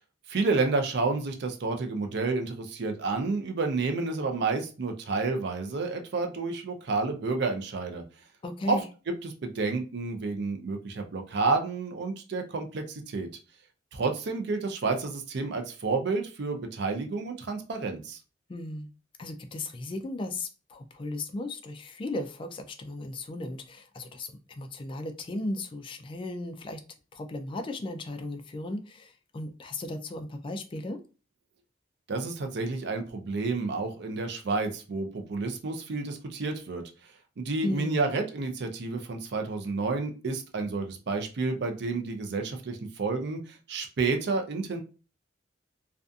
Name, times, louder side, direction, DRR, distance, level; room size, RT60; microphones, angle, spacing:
voice 1, 0.3-8.0 8.7-8.8 9.2-13.3 13.9-18.2 32.1-36.8 37.4-44.8, right 3 dB, 60° right, 5 dB, 0.5 m, -30 dB
voice 2, 8.4-8.8 18.5-18.9 19.2-26.8 27.1-31.0 37.6-38.0, left 2 dB, 25° left, 6 dB, 0.3 m, -36 dB
2.5 x 2.4 x 2.3 m, 0.34 s
head